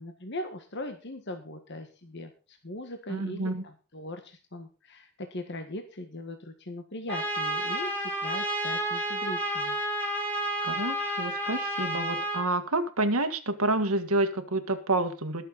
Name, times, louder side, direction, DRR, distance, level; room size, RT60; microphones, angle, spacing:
voice 1, 0.0-9.8, left 1 dB, 55° left, 6 dB, 1.6 m, -40 dB
voice 2, 3.1-3.6 10.6-15.5, right 2 dB, 85° right, 8 dB, 1.9 m, -28 dB
Trumpet, 7.1-12.5, right 1 dB, 10° left, 3.0 m, -30 dB
21.0 x 7.0 x 4.1 m, 0.34 s
head